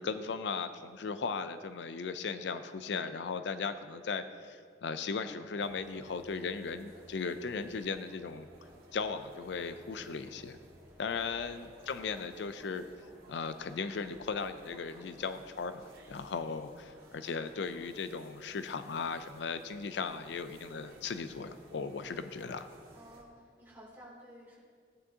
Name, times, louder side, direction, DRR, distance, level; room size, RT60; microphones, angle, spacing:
voice 1, 0.0-8.5 8.9-10.6 11.0-12.9 13.3-22.7, left 5 dB, 75° left, 11 dB, 0.4 m, -37 dB
sound 1, 5.6-23.2, right 1 dB, 55° right, 2.1 m, -57 dB
voice 2, 11.3-11.7 22.9-24.6, equal, 10° right, -7 dB, 2.7 m, -54 dB
14.5 x 9.5 x 2.8 m, 2.1 s
head